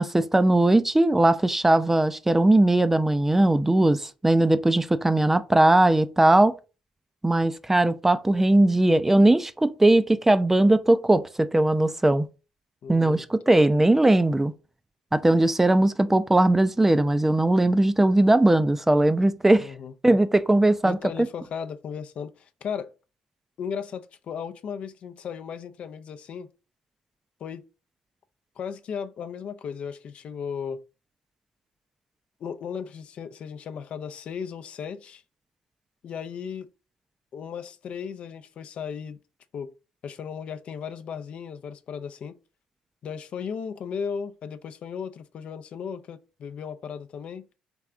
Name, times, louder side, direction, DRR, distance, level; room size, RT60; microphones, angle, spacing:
voice 1, 0.0-6.5 7.2-12.3 12.9-14.5 15.1-19.7 20.0-21.0, right 1 dB, 10° right, 0.4 m, -19 dB
voice 2, 12.8-13.2 19.6-19.9 20.8-22.9 23.6-26.5 27.4-27.6 28.6-30.8 32.4-35.2 36.0-36.7 37.3-39.2 39.5-39.7 40.0-42.4 43.0-47.5, left 7 dB, 55° left, 0.5 m, -36 dB
3.4 x 3.3 x 3.6 m
supercardioid pair, 75°, 2 cm